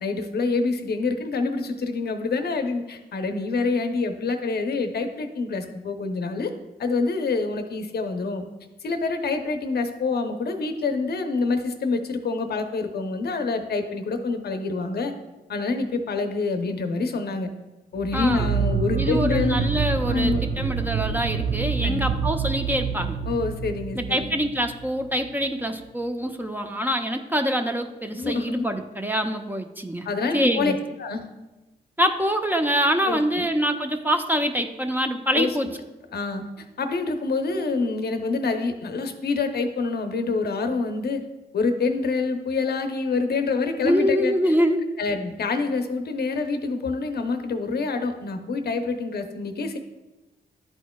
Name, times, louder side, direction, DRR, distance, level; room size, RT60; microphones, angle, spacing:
voice 1, 0.0-6.5 6.8-8.4 8.8-15.1 15.5-17.5 17.9-19.7 20.1-20.4 21.8-22.1 23.3-24.3 28.2-28.7 30.0-30.7 31.0-31.2 33.1-33.4 35.3-35.6 36.1-41.2 41.5-44.5 45.0-49.8, left 4 dB, 60° left, 7 dB, 0.8 m, -26 dB
sound 1, 18.0-25.3, right 6 dB, 60° right, 0.7 m, -27 dB
voice 2, 18.1-18.5 19.0-23.2 24.0-30.1 30.3-30.8 32.0-35.7 43.8-44.8, equal, 10° right, 5 dB, 0.6 m, -25 dB
11.0 x 4.4 x 2.3 m, 1.1 s
cardioid pair, 55°, 18 cm